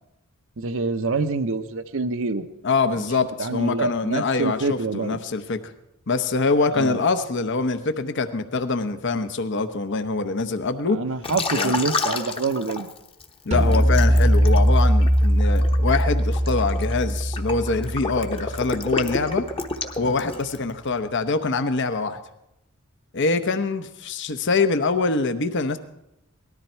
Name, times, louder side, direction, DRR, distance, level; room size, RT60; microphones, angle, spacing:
voice 1, 0.6-2.4 3.4-5.2 6.7-7.0 10.9-12.9, right 3 dB, 65° right, 10 dB, 0.8 m, -26 dB
voice 2, 2.6-5.6 6.1-11.0 11.6-11.8 13.5-19.4 20.0-22.2 23.1-25.8, left 3 dB, 55° left, 9 dB, 0.8 m, -24 dB
Liquid, 11.2-13.2 13.7-20.7, left 3 dB, 25° left, 1.0 m, -30 dB
sound 1, 13.5-18.9, equal, 30° right, 0.8 m, -20 dB
18.5 x 13.0 x 4.4 m, 0.87 s
head